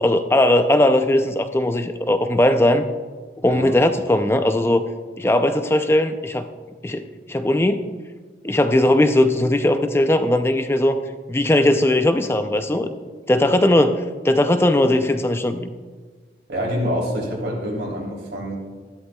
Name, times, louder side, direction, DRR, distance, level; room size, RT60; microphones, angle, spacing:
voice 1, 0.0-2.8 3.4-4.8 5.2-6.4 6.8-7.0 7.3-7.9 8.4-11.0 11.3-12.9 13.3-15.7, left 1 dB, 15° left, 8 dB, 0.4 m, -18 dB
voice 2, 16.5-18.6, equal, 90° right, -2 dB, 3.1 m, -26 dB
13.5 x 11.5 x 2.3 m, 1.5 s
head